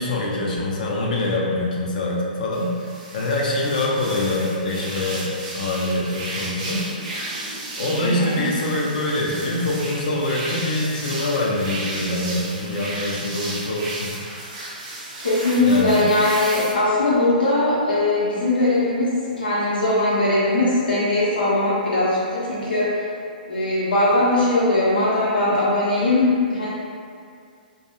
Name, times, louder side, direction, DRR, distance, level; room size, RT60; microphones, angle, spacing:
voice 1, 0.0-6.9 7.8-14.1 15.6-16.0, left 2 dB, 60° left, -3 dB, 0.5 m, -24 dB
sound 1, 2.5-16.7, right 2 dB, 50° right, 0.6 m, -34 dB
voice 2, 8.0-8.5 15.2-23.0 23.5-26.7, left 2 dB, 80° left, -10 dB, 0.8 m, -20 dB
2.3 x 2.2 x 2.9 m, 2.2 s
figure-of-eight pair, 120°, 5 cm